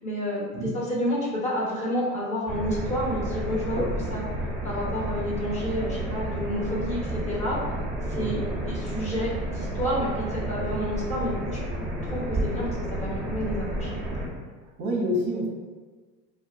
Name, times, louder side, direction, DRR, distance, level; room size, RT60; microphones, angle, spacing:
voice 1, 0.0-3.8 4.1-4.2 4.6-7.6 8.1-8.4 8.6-11.6 12.0-13.9, equal, 15° left, -6 dB, 1.1 m, -29 dB
sound 1, 2.5-14.3, right 1 dB, 5° right, 1.1 m, -31 dB
voice 2, 8.1-8.5 14.8-15.5, equal, 40° right, -1 dB, 0.8 m, -28 dB
2.3 x 2.2 x 3.9 m, 1.4 s
hypercardioid pair, 85°, 50 cm